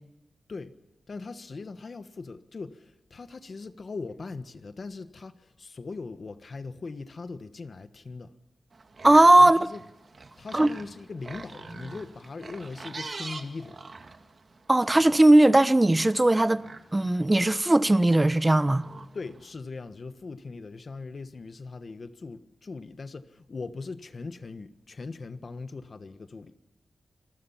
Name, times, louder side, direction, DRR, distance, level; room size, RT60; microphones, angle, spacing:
voice 1, 1.1-8.3 9.4-9.8 10.4-13.8 19.1-26.6, left 4 dB, 50° left, 1.3 m, -40 dB
sound 1, 8.7-19.5, right 3 dB, 50° right, 2.1 m, -45 dB
voice 2, 9.0-9.6 10.5-10.7 14.7-16.6 16.9-18.9, right 1 dB, 20° right, 0.9 m, -18 dB
27.5 x 20.5 x 5.7 m
wide cardioid pair, 85°, 0 cm